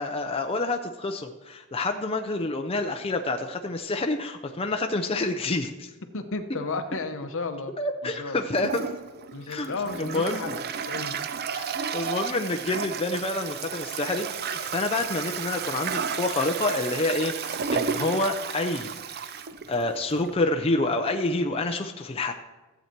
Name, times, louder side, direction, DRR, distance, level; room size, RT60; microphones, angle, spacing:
voice 1, 0.0-5.9 7.8-8.8 9.5-10.4 11.5-19.0 19.2-19.3 19.7-22.3, left 2 dB, 25° left, 4 dB, 0.6 m, -28 dB
voice 2, 6.1-7.7 8.0-8.5 9.3-10.6 10.9-11.1, left 3 dB, 65° left, 8 dB, 0.9 m, -33 dB
Toilet flush, 8.5-20.3, right 6 dB, 45° right, 0.5 m, -33 dB
15.0 x 8.0 x 4.5 m, 1.2 s
head